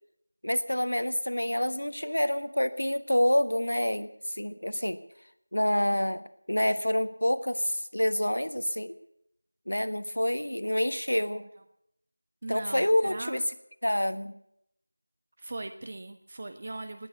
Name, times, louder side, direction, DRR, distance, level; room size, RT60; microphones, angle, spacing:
voice 1, 0.4-5.0 5.5-8.9 9.7-11.4 12.5-13.4 13.8-14.3, left 1 dB, 75° left, 12 dB, 1.4 m, -27 dB
voice 2, 12.4-13.4 15.4-17.1, right 2 dB, 30° right, 9 dB, 0.7 m, -39 dB
19.5 x 9.1 x 8.2 m, 0.74 s
figure-of-eight pair, 170°, 0 cm